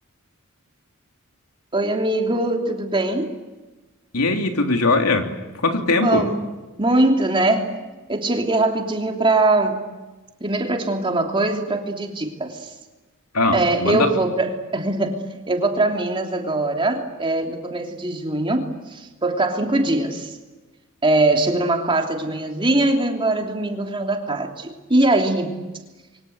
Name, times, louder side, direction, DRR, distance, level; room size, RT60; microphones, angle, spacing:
voice 1, 1.7-3.3 5.8-6.4 6.8-7.7 8.1-9.8 10.4-12.7 13.5-20.4 21.0-25.6, right 2 dB, 25° right, 2 dB, 3.1 m, -22 dB
voice 2, 4.1-5.3 5.6-6.3 13.3-14.1, left 3 dB, 85° left, 4 dB, 3.2 m, -20 dB
28.5 x 24.0 x 8.1 m, 1.2 s
head